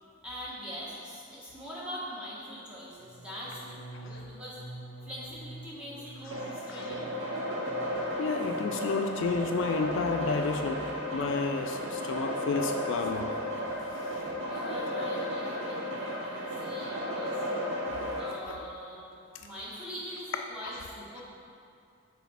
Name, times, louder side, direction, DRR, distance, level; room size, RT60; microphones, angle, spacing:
voice 1, 0.2-4.6 5.0-7.2 14.5-17.4 18.2-19.0 19.3-21.2, equal, 5° right, -8 dB, 1.2 m, -43 dB
sound 1, 2.9-8.9 9.2-9.7 10.0-10.3, right 1 dB, 30° right, 1.2 m, -48 dB
sound 2, 6.3-18.3, equal, 85° right, 0.9 m, -34 dB
voice 2, 6.7-7.0 8.2-13.3 13.9-14.3 18.5-18.6, left 4 dB, 65° left, 5 dB, 0.3 m, -31 dB
6.1 x 4.1 x 4.1 m, 2.4 s
head